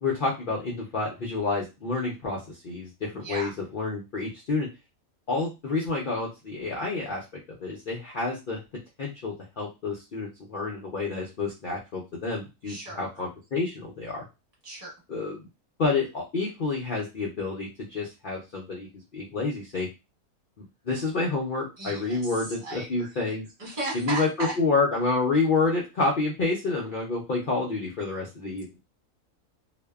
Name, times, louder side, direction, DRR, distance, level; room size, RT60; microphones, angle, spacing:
voice 1, 0.0-4.7 5.3-7.2 7.6-8.6 9.0-14.2 15.1-15.5 15.8-19.9 20.8-23.5 23.9-28.8, left 3 dB, 75° left, -3 dB, 0.4 m, -29 dB
voice 2, 3.1-3.5 12.6-13.2 14.6-14.9 21.8-23.2 23.6-24.5, right 2 dB, 25° right, -3 dB, 1.2 m, -36 dB
2.5 x 2.1 x 2.2 m, 0.25 s
omnidirectional pair, 1.6 m